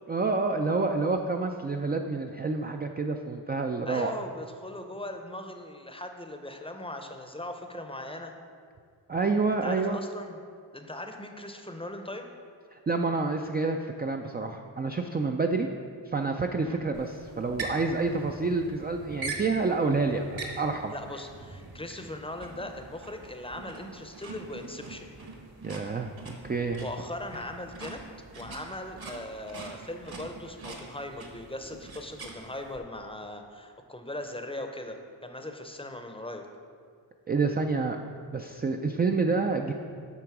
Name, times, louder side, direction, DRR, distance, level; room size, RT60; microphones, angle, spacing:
voice 1, 0.1-4.1 9.1-10.0 12.7-15.7 16.1-20.9 25.6-26.8 37.3-38.0 38.3-39.7, right 3 dB, 25° right, 3 dB, 0.3 m, -28 dB
voice 2, 3.8-8.3 9.6-10.4 10.7-12.3 16.6-16.8 20.9-25.1 26.7-28.0 28.3-36.4, left 1 dB, 10° left, 5 dB, 0.6 m, -39 dB
sound 1, 16.9-32.8, right 3 dB, 55° right, 1.3 m, -43 dB
8.3 x 3.9 x 5.9 m, 2.2 s
cardioid pair, 70°, 45 cm